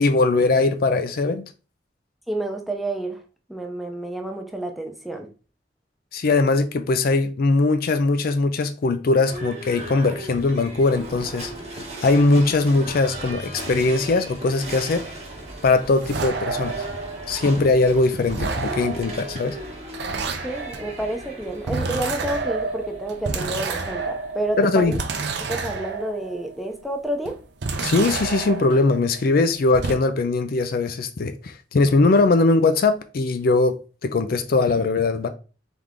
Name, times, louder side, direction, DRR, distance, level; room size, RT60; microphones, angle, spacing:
voice 1, 0.0-1.5 6.1-11.5 12.0-15.1 15.6-16.8 17.3-19.6 24.6-25.0 27.8-35.3, left 3 dB, 55° left, 0.4 m, -20 dB
voice 2, 2.3-3.2 3.5-5.3 20.4-25.0 25.5-27.4, right 1 dB, ahead, 0.6 m, -29 dB
Livestock farm animals working animals / Bell, 9.1-25.0, right 1 dB, 35° right, 1.1 m, -37 dB
sound 1, 14.9-17.8 18.2-26.7 27.3-29.4 29.7-30.0, right 4 dB, 65° right, 0.6 m, -30 dB
3.6 x 3.2 x 3.6 m
head